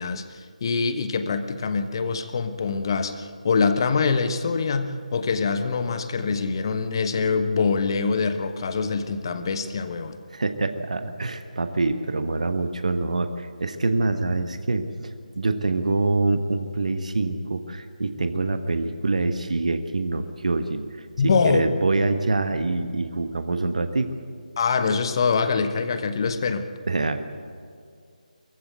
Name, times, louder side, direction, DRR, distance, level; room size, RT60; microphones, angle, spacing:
voice 1, 0.0-10.2 21.2-21.7 24.6-26.7, left 5 dB, 35° left, 10 dB, 1.3 m, -24 dB
voice 2, 10.3-24.1 26.9-27.2, right 3 dB, 60° right, 9 dB, 1.3 m, -25 dB
23.0 x 15.5 x 8.1 m, 2.2 s
figure-of-eight pair, 150°, 4 cm